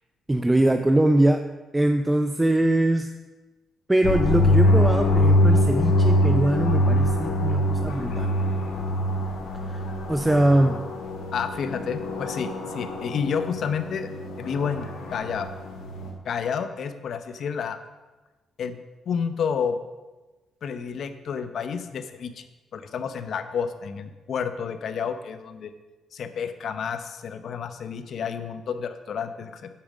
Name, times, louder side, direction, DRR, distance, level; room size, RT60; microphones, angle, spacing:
voice 1, 0.3-1.4 1.7-3.1 3.9-8.4 9.7-9.8 10.1-10.8, right 1 dB, 15° right, 7 dB, 0.5 m, -22 dB
sound 1, 4.0-16.1, left 1 dB, 85° left, 2.2 m, -24 dB
voice 2, 11.3-14.1 14.4-15.5 16.2-17.8 18.6-18.8 19.1-19.8 20.6-22.4 22.7-25.7 26.1-29.7, left 6 dB, 60° left, 9 dB, 0.8 m, -30 dB
8.6 x 5.1 x 7.3 m, 1.2 s
cardioid pair, 90°, 0 cm